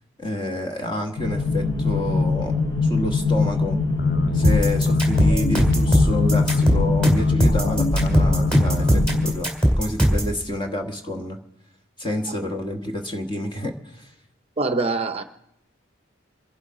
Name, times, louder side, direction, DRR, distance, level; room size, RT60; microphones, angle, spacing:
voice 1, 0.2-2.6 2.9-3.8 4.3-9.5 9.8-11.4 12.0-14.1, left 1 dB, 25° left, 4 dB, 1.2 m, -29 dB
sound 1, 1.2-9.3, left 3 dB, 80° left, 4.8 m, -22 dB
sound 2, 4.0-9.0, left 1 dB, 55° left, 0.5 m, -29 dB
sound 3, 4.4-10.3, equal, 5° left, 2.7 m, -19 dB
voice 2, 14.6-15.2, right 3 dB, 30° right, 8 dB, 0.6 m, -24 dB
25.5 x 11.0 x 3.7 m, 0.80 s
head